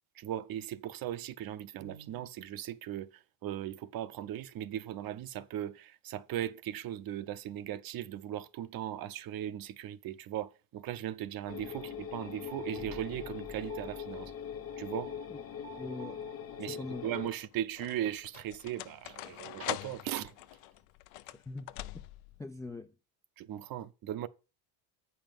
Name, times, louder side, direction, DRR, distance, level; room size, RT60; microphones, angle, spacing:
voice 1, 0.2-3.1 3.4-14.3 14.8-15.1 16.6-20.3 23.4-24.3, right 11 dB, 45° right, 0.7 m, -38 dB
sound 1, 11.5-17.3, left 8 dB, 30° left, 0.9 m, -42 dB
sound 2, 11.8-16.9, right 14 dB, 80° right, 1.9 m, -55 dB
sound 3, 15.6-16.1 16.9-22.4, left 17 dB, 75° left, 0.7 m, -44 dB
voice 2, 15.8-16.2 16.6-17.1 21.5-21.7 22.4-22.9, left 2 dB, 10° left, 0.3 m, -42 dB
8.3 x 5.6 x 5.2 m
supercardioid pair, 115°, 48 cm